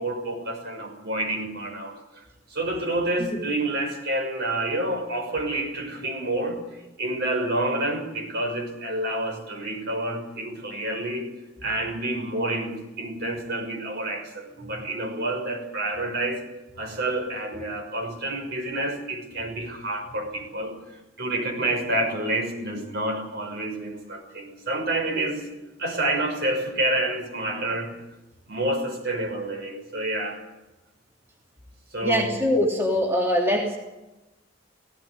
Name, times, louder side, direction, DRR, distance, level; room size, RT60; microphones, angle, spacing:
voice 1, 0.0-2.2 2.5-11.3 11.6-16.5 16.8-25.5 25.8-27.9 28.5-30.4 31.9-32.4, right 1 dB, 60° right, 3 dB, 6.2 m, -28 dB
voice 2, 32.0-33.8, equal, 15° right, -1 dB, 2.9 m, -23 dB
17.5 x 17.5 x 9.7 m, 1.0 s
head